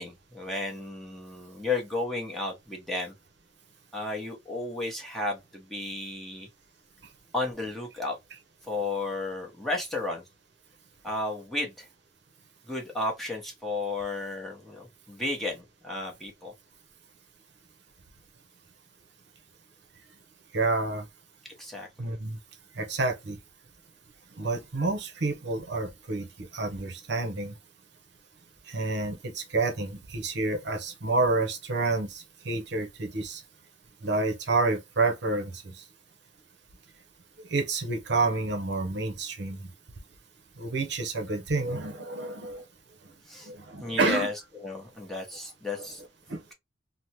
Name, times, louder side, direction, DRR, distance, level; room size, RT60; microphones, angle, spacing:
voice 1, 0.0-3.1 3.9-6.5 7.3-8.2 8.7-10.2 11.0-11.9 12.7-16.5 21.6-21.9 43.3-43.5 43.8-44.3 44.6-46.0, left 2 dB, ahead, 0.9 m, -33 dB
voice 2, 20.5-21.1 22.0-22.4 22.7-23.4 24.4-27.5 28.7-33.4 34.0-35.8 37.4-39.7 40.6-42.6 43.4-44.3 45.8-45.9 46.3-46.4, right 3 dB, 60° right, 0.7 m, -29 dB
3.3 x 2.1 x 2.8 m
head